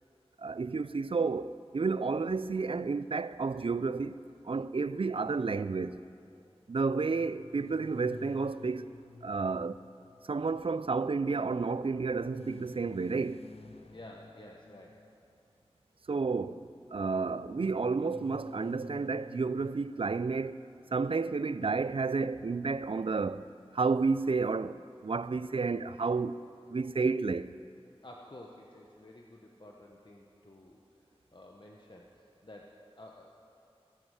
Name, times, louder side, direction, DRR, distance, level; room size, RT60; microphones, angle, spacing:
voice 1, 0.4-4.2 4.4-6.0 6.7-8.9 9.2-9.8 10.3-13.4 16.1-20.6 20.9-23.4 23.7-26.4 26.7-27.5, right 4 dB, 60° right, 0.4 m, -31 dB
sound 1, 7.1-10.7 12.3-15.4 17.5-19.7, left 3 dB, 70° left, 0.7 m, -52 dB
voice 2, 13.9-15.1 28.0-33.3, left 1 dB, 50° left, 1.0 m, -52 dB
17.0 x 9.6 x 4.9 m
wide cardioid pair, 40°, 10 cm